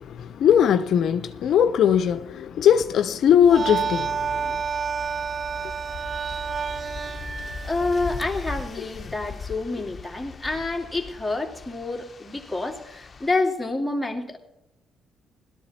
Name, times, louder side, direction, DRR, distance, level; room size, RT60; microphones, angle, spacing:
voice 1, 0.0-4.6, left 8 dB, 70° left, 0.6 m, -20 dB
sound 1, 3.4-8.6, right 6 dB, 40° right, 0.5 m, -30 dB
sound 2, 5.0-13.3, left 5 dB, 35° left, 1.0 m, -40 dB
voice 2, 7.6-14.4, left 2 dB, 10° left, 2.6 m, -28 dB
17.0 x 12.5 x 4.3 m
cardioid pair, 90°, 0 cm